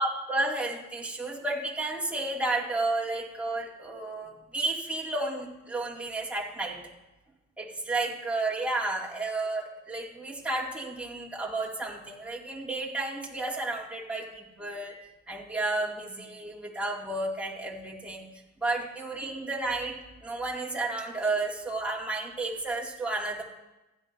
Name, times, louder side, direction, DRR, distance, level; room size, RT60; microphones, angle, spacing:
voice 1, 0.0-6.8 7.6-15.0 15.3-18.2 18.6-23.4, right 2 dB, 5° right, -5 dB, 2.4 m, -32 dB
15.5 x 10.5 x 2.7 m, 1.0 s
cardioid pair, 90°, 30 cm